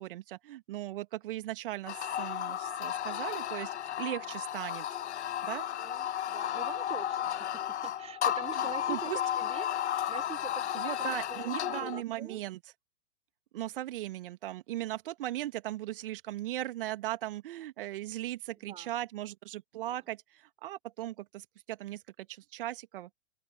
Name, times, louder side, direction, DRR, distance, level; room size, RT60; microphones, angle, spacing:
voice 1, 0.0-4.9 5.4-5.7 8.9-9.2 10.7-12.6 13.5-23.1, right 14 dB, 50° right, 2.4 m, -38 dB
sound 1, 1.9-12.0, left 11 dB, 65° left, 0.5 m, -33 dB
voice 2, 5.8-9.1 9.4-12.4 18.6-19.0 19.8-20.0, right 8 dB, 15° right, 3.6 m, -45 dB
open air
figure-of-eight pair, 105°, 36 cm